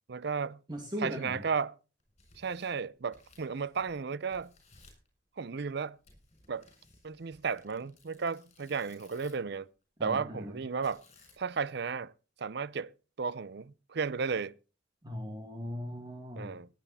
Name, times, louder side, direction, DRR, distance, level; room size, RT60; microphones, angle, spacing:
voice 1, 0.1-0.6 1.0-1.7 2.4-4.5 5.4-6.0 6.5-6.7 7.0-9.7 10.0-11.0 11.4-12.1 12.4-12.9 13.2-14.5 16.4-16.7, right 5 dB, 60° right, 0.6 m, -34 dB
voice 2, 0.7-1.4 10.0-10.6 15.0-16.5, equal, 25° right, 2.2 m, -39 dB
Tearing, 2.0-4.0 4.3-5.1 6.0-9.5 10.8-11.6, left 3 dB, 35° left, 7.1 m, -61 dB
18.0 x 10.5 x 4.2 m
head